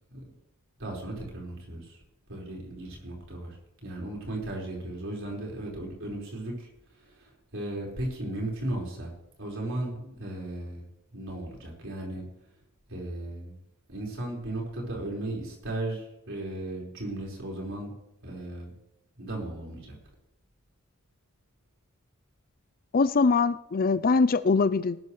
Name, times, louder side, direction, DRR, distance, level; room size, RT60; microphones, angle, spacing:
voice 1, 0.8-2.0 2.3-9.1 9.4-10.8 11.1-12.2 12.9-13.6 13.9-17.9 18.2-18.7 19.2-19.9, right 1 dB, 60° right, -2 dB, 5.0 m, -36 dB
voice 2, 22.9-25.0, left 4 dB, 40° left, 15 dB, 0.4 m, -22 dB
18.5 x 12.5 x 3.3 m, 0.87 s
head